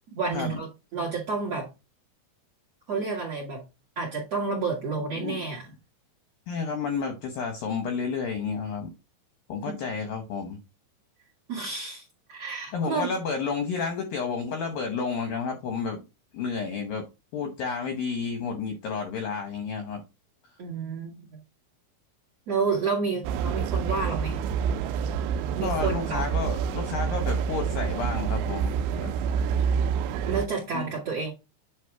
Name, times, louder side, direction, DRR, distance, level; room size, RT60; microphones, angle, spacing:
voice 1, 0.1-0.7 0.9-1.7 2.9-3.6 4.0-5.7 11.5-13.1 20.6-21.4 22.5-24.4 25.5-26.2 30.2-31.3, right 4 dB, 55° right, 1.8 m, -30 dB
voice 2, 5.0-5.4 6.5-8.9 9.5-10.6 12.7-16.0 16.3-17.0 17.3-20.0 25.6-29.1 30.7-30.9, left 5 dB, 80° left, 2.0 m, -31 dB
sound 1, 23.2-30.5, right 7 dB, 85° right, 2.7 m, -27 dB
9.2 x 3.4 x 4.6 m
omnidirectional pair, 5.6 m